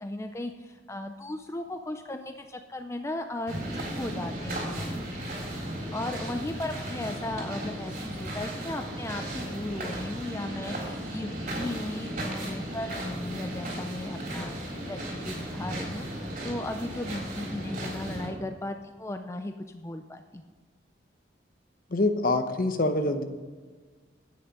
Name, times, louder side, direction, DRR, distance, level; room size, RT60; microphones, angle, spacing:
voice 1, 0.0-4.9 5.9-15.0 15.3-20.4, left 1 dB, 15° left, 6 dB, 0.4 m, -36 dB
sound 1, 3.5-18.3, right 1 dB, 45° right, 3.8 m, -35 dB
voice 2, 21.9-23.2, left 2 dB, 50° left, 8 dB, 0.9 m, -25 dB
10.0 x 8.6 x 5.2 m, 1.4 s
head